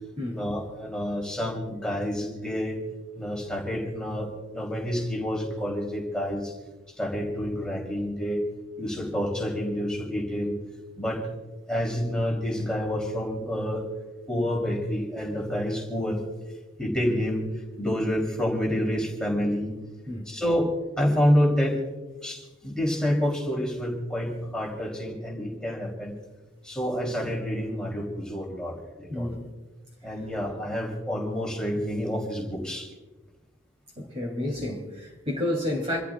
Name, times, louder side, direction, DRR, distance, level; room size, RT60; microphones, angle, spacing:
voice 1, 0.3-2.8 3.2-6.5 7.0-8.4 8.8-10.5 11.0-11.3 11.7-13.9 14.3-16.2 16.8-19.7 20.2-21.8 22.2-26.1 26.6-29.3 30.0-32.9, equal, 5° left, 3.4 m, -28 dB
voice 2, 29.1-29.4 33.9-36.0, left 1 dB, 30° right, 3.4 m, -30 dB
28.0 x 14.0 x 2.5 m
head